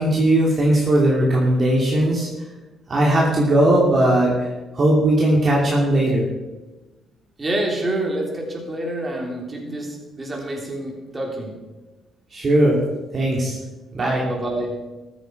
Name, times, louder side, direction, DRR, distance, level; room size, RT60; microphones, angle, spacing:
voice 1, 0.0-2.3 2.9-4.5 4.7-6.3 12.3-12.8 13.1-13.6 13.9-14.2, right 1 dB, 40° right, -3 dB, 2.8 m, -18 dB
voice 2, 7.4-11.5 14.2-14.8, right 1 dB, 25° right, 0 dB, 3.5 m, -27 dB
14.5 x 9.2 x 4.7 m, 1.1 s
cardioid pair, 90°, 0 cm